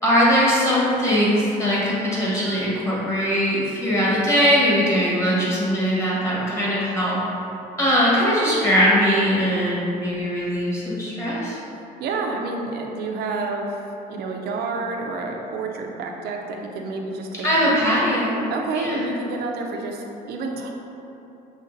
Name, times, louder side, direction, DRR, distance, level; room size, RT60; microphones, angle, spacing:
voice 1, 0.0-7.2 7.8-11.6 17.4-18.4 18.7-19.1, equal, 15° left, -7 dB, 1.4 m, -20 dB
voice 2, 5.2-5.6 12.0-17.5 18.5-20.7, right 3 dB, 70° right, 2 dB, 0.6 m, -29 dB
5.2 x 3.4 x 2.7 m, 2.9 s
cardioid pair, 110°, 17 cm